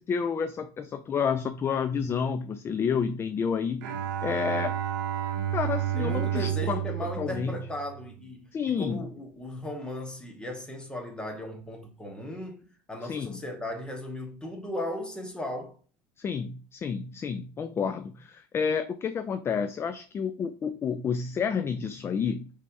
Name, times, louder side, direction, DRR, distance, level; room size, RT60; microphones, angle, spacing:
voice 1, 0.0-4.8 5.5-6.8 7.2-7.6 8.5-9.0 13.1-13.3 16.2-22.5, left 6 dB, 25° left, 0.3 m, -30 dB
Bowed string instrument, 3.8-8.3, right 11 dB, 90° right, 0.7 m, -31 dB
voice 2, 6.0-12.6 12.9-15.7, left 1 dB, 10° left, 1.3 m, -37 dB
5.3 x 3.3 x 2.6 m
supercardioid pair, 115°, 10 cm